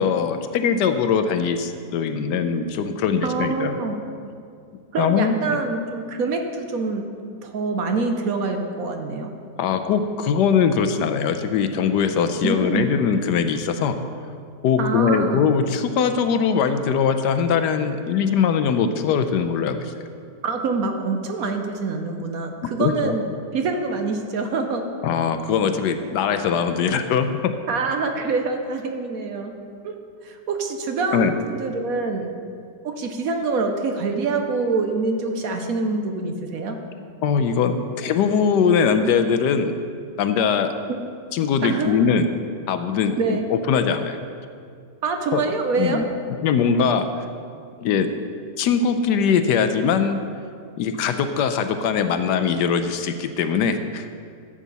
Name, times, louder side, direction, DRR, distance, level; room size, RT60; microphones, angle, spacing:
voice 1, 0.0-3.8 5.0-5.6 9.6-14.0 14.6-19.9 22.8-23.1 25.0-27.5 31.1-31.3 37.2-39.7 40.2-40.7 41.3-42.3 42.7-44.2 45.3-45.4 45.8-46.0 46.4-47.2 47.8-48.1 48.6-50.2 50.8-54.1, left 6 dB, 75° left, 8 dB, 1.2 m, -21 dB
voice 2, 3.2-3.9 4.9-7.0 7.4-9.3 12.4-12.9 14.8-15.5 20.4-23.2 23.5-24.8 27.7-29.5 29.8-29.9 30.2-32.3 32.8-36.8 41.6-42.0 43.2-43.5 45.0-46.0, right 4 dB, 60° right, 5 dB, 1.1 m, -25 dB
13.5 x 7.4 x 4.1 m, 2.3 s
omnidirectional pair, 1.9 m